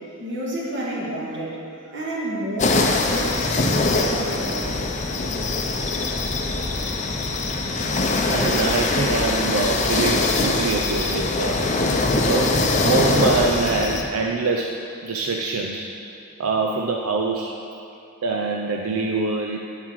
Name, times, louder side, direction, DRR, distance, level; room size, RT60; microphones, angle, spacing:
voice 1, 0.2-1.6 1.8-4.6, right 1 dB, 55° right, -5 dB, 1.9 m, -30 dB
sound 1, 2.6-14.0, left 2 dB, 35° left, 0.6 m, -22 dB
voice 2, 8.3-11.7 12.3-15.9 16.4-17.5 18.2-19.6, right 3 dB, 85° right, 1 dB, 0.5 m, -24 dB
8.5 x 7.5 x 4.7 m, 2.7 s
head